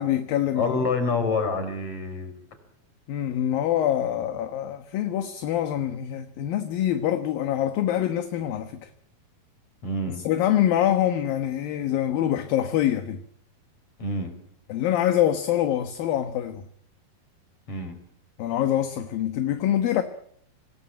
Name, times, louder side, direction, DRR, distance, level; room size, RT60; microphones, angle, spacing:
voice 1, 0.0-0.7 3.1-8.9 10.2-13.2 14.7-16.6 18.4-20.0, left 11 dB, 70° left, 2.8 m, -25 dB
voice 2, 0.5-2.3 9.8-10.2 14.0-14.4 17.7-18.0, left 3 dB, 35° left, 5.5 m, -27 dB
26.5 x 19.5 x 9.2 m
omnidirectional pair, 4.6 m